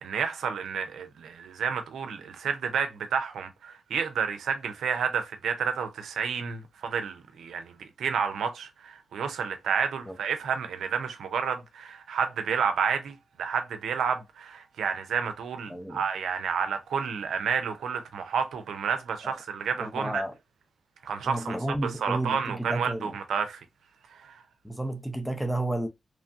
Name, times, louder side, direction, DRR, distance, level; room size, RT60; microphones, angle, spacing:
voice 1, 0.0-20.2 21.0-23.6 24.1-24.4, right 6 dB, 90° right, 0.5 m, -30 dB
voice 2, 15.7-16.0 19.2-19.3 19.8-20.3 21.2-23.1 24.6-25.9, right 1 dB, ahead, 0.6 m, -31 dB
3.0 x 2.2 x 2.6 m
supercardioid pair, 45°, 0 cm